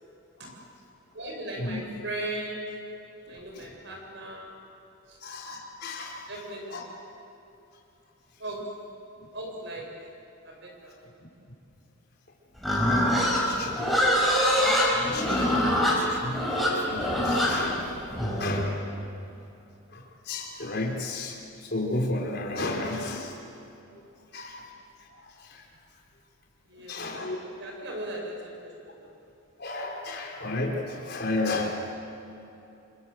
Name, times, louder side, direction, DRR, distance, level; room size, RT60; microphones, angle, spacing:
voice 1, 1.1-2.8 3.2-4.6 5.1-5.2 6.3-6.8 8.4-8.8 9.3-10.0 10.4-10.9 26.6-27.0 27.6-29.1, right 1 dB, 55° right, 0 dB, 7.4 m, -37 dB
voice 2, 5.2-6.2 6.7-6.8 12.7-12.9 13.3-13.8 14.9-18.8 19.9-21.4 21.7-23.3 24.3-24.6 25.2-25.6 26.9-27.4 29.6-31.8, left 2 dB, 50° left, -1 dB, 4.9 m, -33 dB
Livestock farm animals working animals, 12.6-18.7, equal, ahead, 5.5 m, -24 dB
28.5 x 26.0 x 8.1 m, 2.8 s
head